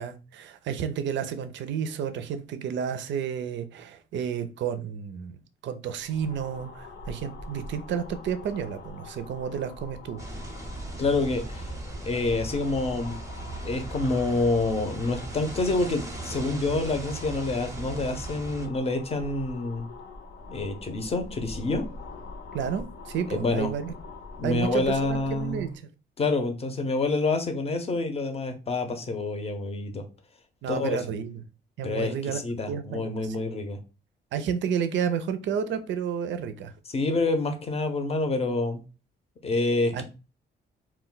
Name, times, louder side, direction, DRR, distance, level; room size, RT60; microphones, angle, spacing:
voice 1, 0.0-10.3 22.5-23.9 24.4-25.7 30.6-31.4 31.8-32.4 32.7-33.6 34.3-36.7 39.9-40.0, right 7 dB, 65° right, 0.4 m, -31 dB
sound 1, 5.9-25.8, left 3 dB, 65° left, 0.7 m, -43 dB
sound 2, 10.2-18.7, right 2 dB, 15° right, 0.6 m, -38 dB
voice 2, 11.0-11.7 12.0-13.2 13.6-19.9 20.5-21.8 23.3-23.7 24.4-25.7 26.2-30.1 30.7-31.0 31.8-33.8 36.9-38.8 39.4-40.0, left 3 dB, 30° left, 0.6 m, -27 dB
2.2 x 2.2 x 3.7 m
cardioid pair, 90°, 20 cm